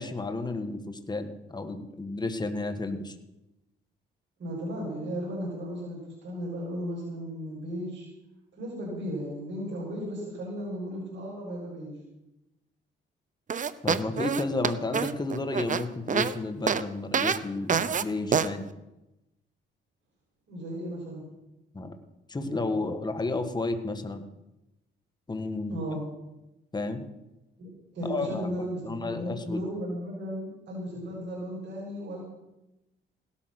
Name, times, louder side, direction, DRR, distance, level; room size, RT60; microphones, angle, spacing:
voice 1, 0.0-3.1 13.8-18.6 21.7-21.9 22.3-24.3 25.3-25.8 26.7-27.0 28.1-29.6, left 2 dB, 20° left, 7 dB, 1.8 m, -32 dB
voice 2, 4.4-8.1 8.5-12.0 20.5-21.2 22.4-22.6 25.7-26.0 27.6-32.2, equal, 65° right, -5 dB, 7.3 m, -35 dB
sound 1, 13.5-16.3 16.7-16.8 17.1-17.4 17.7-18.0 18.3-18.5, right 7 dB, 40° right, 0.9 m, -26 dB
17.5 x 13.0 x 6.1 m, 0.95 s
cardioid pair, 90°, 20 cm